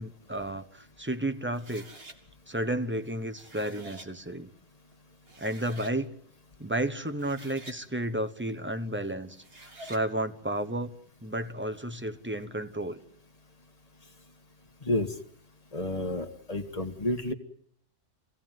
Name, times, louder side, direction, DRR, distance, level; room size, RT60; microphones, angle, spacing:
voice 1, 0.0-1.9 2.5-4.5 5.4-6.1 6.6-9.4 9.8-10.9 11.2-13.0, right 1 dB, 10° right, 10 dB, 0.9 m, -32 dB
sound 1, 1.5-2.2 3.2-4.1 4.9-5.0 5.3-6.0 7.0-7.8 9.3-10.0, right 2 dB, 40° right, 2.4 m, -48 dB
voice 2, 15.7-17.3, left 1 dB, 25° left, 5 dB, 1.8 m, -30 dB
25.0 x 17.0 x 9.2 m, 0.70 s
omnidirectional pair, 1.5 m